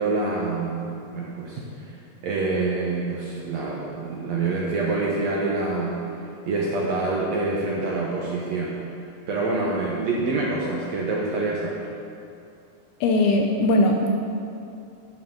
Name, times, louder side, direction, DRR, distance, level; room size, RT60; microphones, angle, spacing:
voice 1, 0.0-2.0 2.2-6.0 6.5-8.8 9.3-11.9, right 3 dB, 70° right, -4 dB, 1.7 m, -26 dB
voice 2, 13.0-14.1, left 2 dB, 85° left, 2 dB, 2.6 m, -19 dB
11.5 x 11.5 x 3.9 m, 2.6 s
omnidirectional pair, 4.4 m